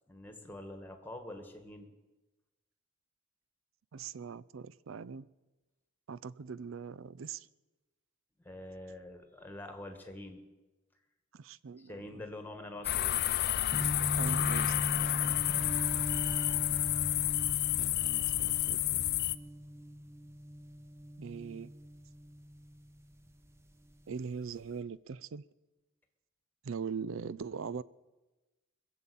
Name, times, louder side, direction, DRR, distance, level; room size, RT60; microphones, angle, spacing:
voice 1, 0.1-1.9 8.4-10.4 11.8-13.2, left 1 dB, 10° left, 1.6 m, -46 dB
voice 2, 3.9-5.3 6.1-7.5 11.3-12.1 14.2-14.9 17.8-19.1 21.2-21.7 24.1-25.4 26.6-27.8, right 6 dB, 70° right, 0.5 m, -41 dB
sound 1, 12.8-19.4, left 14 dB, 50° left, 0.5 m, -30 dB
sound 2, 13.5-23.6 23.9-24.7, equal, 15° right, 0.7 m, -40 dB
21.5 x 7.3 x 8.5 m
head